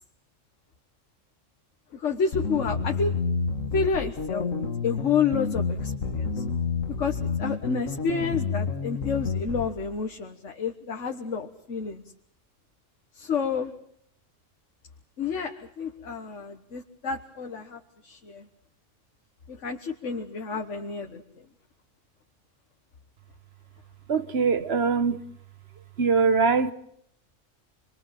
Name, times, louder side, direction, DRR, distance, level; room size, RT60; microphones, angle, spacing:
voice 1, 1.9-3.1 3.7-4.5 4.8-6.4 7.0-12.0 13.1-13.7 15.2-18.5 19.5-21.2, left 5 dB, 65° left, 1.7 m, -29 dB
sound 1, 2.3-9.7, left 5 dB, 90° left, 1.9 m, -29 dB
voice 2, 24.1-25.3 26.0-26.7, right 5 dB, 55° right, 1.5 m, -22 dB
28.0 x 22.0 x 7.6 m
omnidirectional pair, 1.3 m